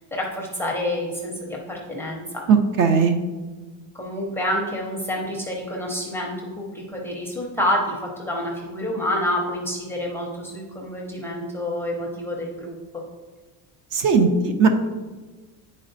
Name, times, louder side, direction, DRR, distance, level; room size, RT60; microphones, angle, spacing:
voice 1, 0.1-2.4 3.9-13.0, left 1 dB, 5° left, -2 dB, 0.5 m, -28 dB
voice 2, 2.5-3.2 13.9-14.7, right 5 dB, 50° right, 7 dB, 0.6 m, -18 dB
9.9 x 4.1 x 2.6 m, 1.3 s
cardioid pair, 170°, 42 cm